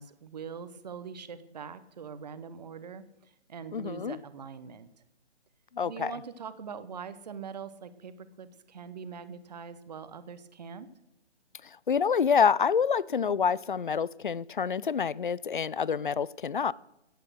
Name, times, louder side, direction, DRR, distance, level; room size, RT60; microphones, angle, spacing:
voice 1, 0.0-4.9 5.8-10.9, right 6 dB, 35° right, 1.1 m, -43 dB
voice 2, 3.7-4.2 5.7-6.1 11.9-16.7, left 6 dB, 45° left, 0.5 m, -27 dB
15.5 x 8.7 x 6.3 m
figure-of-eight pair, 145°, 35 cm